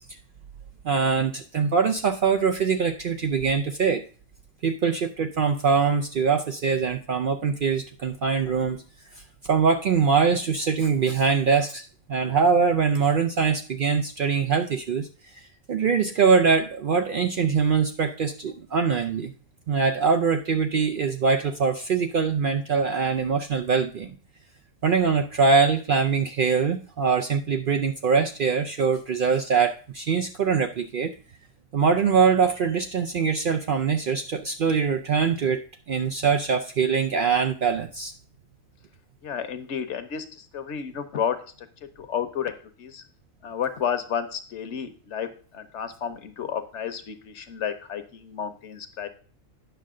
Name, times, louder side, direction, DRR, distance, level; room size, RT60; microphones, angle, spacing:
voice 1, 0.8-4.0 4.6-8.8 9.5-15.1 15.7-19.3 19.7-24.1 24.8-31.1 31.7-38.1, right 5 dB, 70° right, 6 dB, 0.5 m, -23 dB
voice 2, 39.2-40.2 40.5-41.4 42.0-42.5 42.8-43.0 43.4-45.3 45.5-49.1, left 8 dB, 60° left, 10 dB, 1.1 m, -31 dB
9.1 x 6.4 x 3.7 m, 0.40 s
omnidirectional pair, 1.4 m